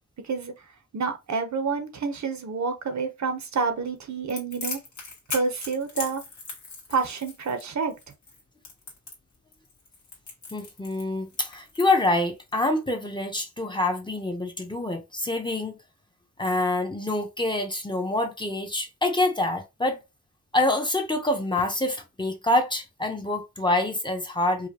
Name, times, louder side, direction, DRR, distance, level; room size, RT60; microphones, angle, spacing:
voice 1, 0.9-4.8 5.3-6.2 6.9-7.9, right 5 dB, 70° right, 0.8 m, -28 dB
Crackle, 4.3-12.5, left 3 dB, 80° left, 1.5 m, -39 dB
voice 2, 10.5-15.8 16.4-20.0 20.5-24.7, left 2 dB, 15° left, 0.6 m, -26 dB
4.8 x 2.2 x 2.8 m
wide cardioid pair, 160°, 29 cm